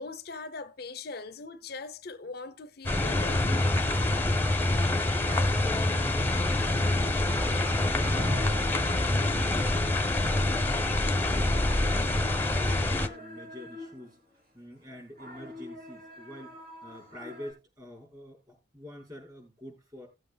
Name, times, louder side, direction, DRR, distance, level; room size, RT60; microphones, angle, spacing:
voice 1, 0.0-3.6, left 3 dB, 60° left, 0.7 m, -40 dB
sound 1, 2.9-13.1, left 2 dB, 10° left, 0.9 m, -26 dB
voice 2, 5.2-7.3 7.8-10.5 10.9-14.2 14.5-16.5 16.8-20.1, left 1 dB, 20° right, 4.9 m, -46 dB
sound 2, 7.3-14.4 14.8-17.5, left 1 dB, 60° right, 3.2 m, -46 dB
18.0 x 7.8 x 2.3 m
head